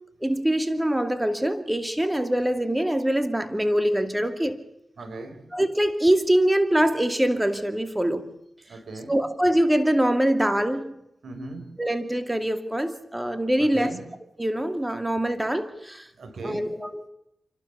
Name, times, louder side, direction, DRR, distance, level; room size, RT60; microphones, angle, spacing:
voice 1, 0.2-4.6 5.5-8.3 9.1-10.9 11.8-13.9 14.4-16.0 16.4-17.1, right 1 dB, 10° right, 2.6 m, -24 dB
voice 2, 5.0-5.4 8.7-9.2 11.2-11.7 13.6-14.0 16.2-16.7, right 2 dB, 70° right, 5.2 m, -37 dB
29.0 x 12.5 x 8.4 m
cardioid pair, 50°, 0 cm